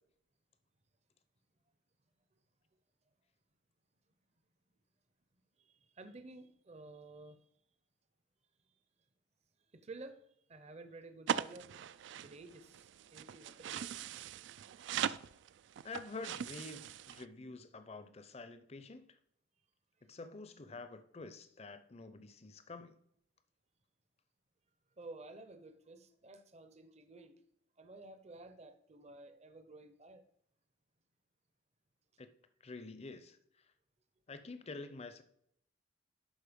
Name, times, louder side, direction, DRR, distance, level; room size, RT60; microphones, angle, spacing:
voice 1, 5.6-7.4 9.7-10.2 10.5-11.7 12.2-14.3 25.0-27.4 27.8-30.2, right 2 dB, 35° right, 0.7 m, -53 dB
sound 1, 11.3-17.2, right 9 dB, 65° right, 0.3 m, -40 dB
voice 2, 15.8-19.1 20.0-23.0 32.2-32.3 32.6-33.4 34.3-35.2, left 3 dB, 30° left, 0.6 m, -48 dB
11.5 x 4.4 x 5.1 m
head